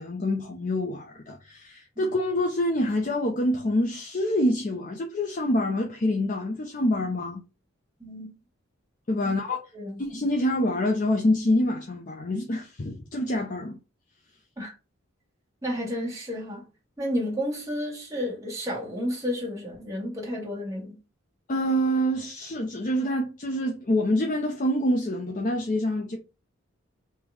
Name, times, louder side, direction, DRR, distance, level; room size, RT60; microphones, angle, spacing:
voice 1, 0.0-7.4 9.1-9.6 10.0-13.8 21.5-26.2, left 1 dB, 40° left, 0.5 m, -26 dB
voice 2, 15.6-16.7 17.0-21.0, equal, 15° right, 1.9 m, -31 dB
3.5 x 2.9 x 4.5 m
head